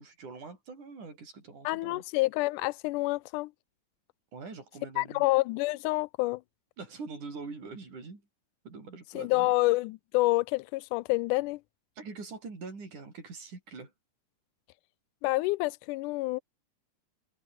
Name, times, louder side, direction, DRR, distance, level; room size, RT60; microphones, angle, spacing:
voice 1, 0.0-2.0 4.3-5.3 6.8-8.2 8.6-9.5 12.0-13.9, right 4 dB, 80° right, 8.0 m, -43 dB
voice 2, 1.7-3.5 5.0-6.4 9.1-11.6 15.2-16.4, left 21 dB, 90° left, 2.1 m, -28 dB
omnidirectional pair, 3.5 m